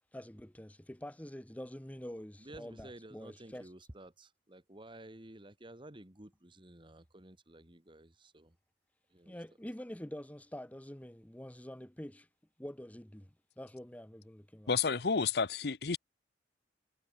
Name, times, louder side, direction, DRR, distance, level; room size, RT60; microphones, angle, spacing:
voice 1, 0.1-3.7 9.3-12.3 12.6-15.0, equal, 10° left, 1.0 m, -46 dB
voice 2, 2.4-8.6 9.1-9.4, right 1 dB, 30° right, 2.4 m, -53 dB
voice 3, 14.7-16.0, left 5 dB, 65° left, 0.8 m, -30 dB
head